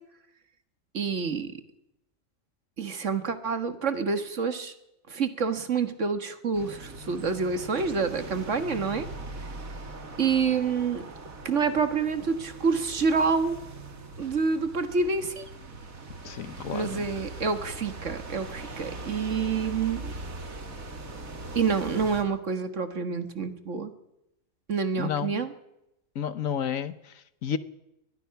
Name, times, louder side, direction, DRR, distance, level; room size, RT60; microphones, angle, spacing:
voice 1, 0.9-1.6 2.8-4.7 5.1-9.1 10.2-11.1 11.5-13.6 14.2-15.5 16.7-20.1 21.6-23.9 24.7-25.5, right 5 dB, 60° right, 9 dB, 1.9 m, -27 dB
sound 1, 6.5-22.2, right 2 dB, 80° right, 2.6 m, -41 dB
voice 2, 16.2-17.1 25.0-25.5 26.1-27.6, left 8 dB, 75° left, 14 dB, 1.4 m, -32 dB
22.5 x 20.0 x 5.9 m, 0.87 s
omnidirectional pair, 1.4 m